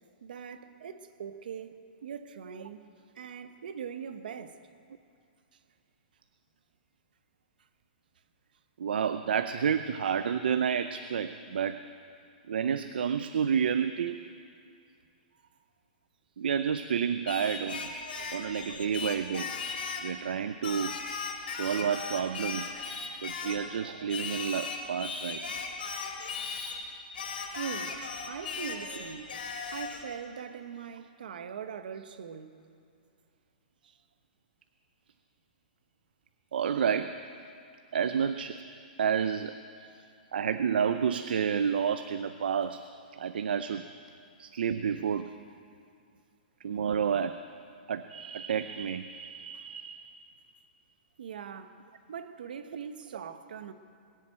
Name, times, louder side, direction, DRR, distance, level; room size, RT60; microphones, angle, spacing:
voice 1, 0.2-4.6 18.1-18.3 27.5-28.0 28.3-29.4 29.7-32.6 33.8-34.0 39.8-40.1 45.4-45.5 51.2-51.7 52.1-53.7, right 7 dB, 60° right, 1.0 m, -41 dB
voice 2, 8.8-11.8 12.5-14.2 16.4-17.9 18.3-19.5 20.0-21.0 21.5-22.8 23.2-25.6 36.5-37.2 37.9-38.6 39.0-39.5 40.3-42.8 43.2-43.9 44.4-45.3 46.6-47.4 47.9-50.1, right 7 dB, 80° right, 0.6 m, -30 dB
Singing, 17.3-20.1 20.6-23.7 24.1-26.8 27.1-30.0, left 4 dB, 80° left, 2.7 m, -37 dB
21.0 x 7.4 x 8.7 m
hypercardioid pair, 180°, 5 cm